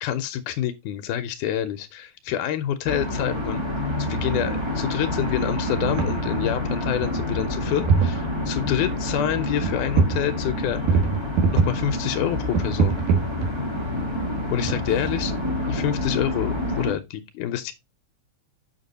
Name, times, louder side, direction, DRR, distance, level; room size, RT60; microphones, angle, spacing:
voice 1, 0.0-3.6 4.0-11.0 11.5-13.0 14.5-15.4 15.7-17.7, left 11 dB, 85° left, 2.1 m, -27 dB
sound 1, 2.8-16.9, left 1 dB, 10° right, 1.4 m, -28 dB
sound 2, 5.7-6.1 6.6-6.7 7.0-7.6 7.8-8.2 9.6-10.2 10.5-11.9 12.5-13.8 14.6-15.5, right 5 dB, 90° right, 3.1 m, -22 dB
7.0 x 5.9 x 4.0 m
omnidirectional pair, 3.5 m